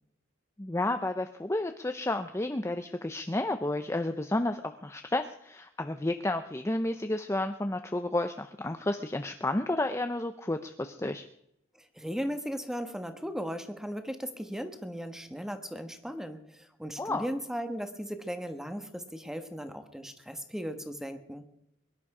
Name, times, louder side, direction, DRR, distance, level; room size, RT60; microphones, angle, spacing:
voice 1, 0.6-11.2 17.0-17.3, left 2 dB, 15° left, 7 dB, 0.5 m, -31 dB
voice 2, 11.8-21.4, equal, ahead, 7 dB, 1.3 m, -37 dB
23.0 x 11.5 x 4.9 m, 0.79 s
head